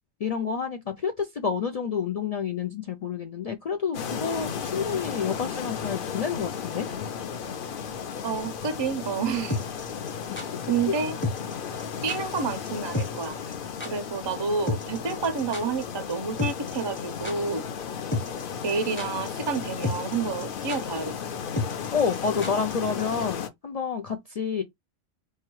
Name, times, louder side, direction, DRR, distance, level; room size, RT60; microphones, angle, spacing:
voice 1, 0.2-6.9 10.9-11.0 21.9-24.6, left 6 dB, 85° left, 0.3 m, -29 dB
sound 1, 3.9-23.5, left 7 dB, 55° left, 0.6 m, -34 dB
voice 2, 8.2-9.6 10.7-11.1 12.0-13.4 13.8-17.6 18.6-21.1, right 5 dB, 45° right, 0.3 m, -29 dB
sound 2, 9.5-10.5 11.2-11.5 11.8-11.9 12.1-12.4 12.7-12.8 12.9-13.3 13.5-13.6 13.8-13.9 14.7-15.8 16.1-16.2 16.4-17.0 17.2-17.4 18.1-18.4 18.7-19.3 19.5-19.6 19.8-20.2 20.4-20.5 20.7-20.8 21.6-22.7 23.0-23.1, left 2 dB, 10° left, 0.7 m, -30 dB
4.7 x 2.3 x 3.0 m
omnidirectional pair, 1.3 m